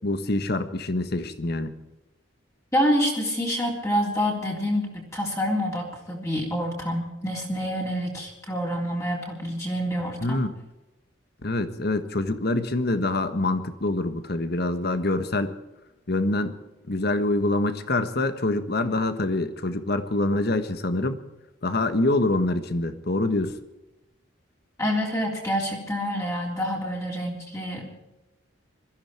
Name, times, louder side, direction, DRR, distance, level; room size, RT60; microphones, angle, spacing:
voice 1, 0.0-1.7 10.2-10.5 11.4-15.6 16.1-16.6 16.9-21.2 21.6-23.6, left 2 dB, 55° left, 10 dB, 1.4 m, -25 dB
voice 2, 2.7-10.4 24.8-27.9, equal, 15° left, -2 dB, 3.6 m, -27 dB
22.0 x 14.5 x 4.5 m, 1.0 s
head